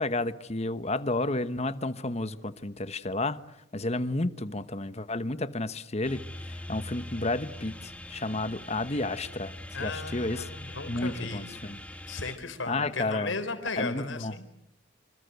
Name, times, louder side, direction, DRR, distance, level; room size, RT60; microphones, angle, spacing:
voice 1, 0.0-3.4 3.7-6.2 6.5-9.5 9.8-10.4 10.9-11.8 12.7-13.3 13.8-14.3, left 2 dB, 35° left, 1.1 m, -31 dB
sound 1, 6.0-12.4, left 1 dB, 5° left, 1.8 m, -42 dB
voice 2, 9.7-11.5 12.1-14.5, left 3 dB, 85° left, 4.0 m, -35 dB
26.5 x 26.5 x 8.2 m
head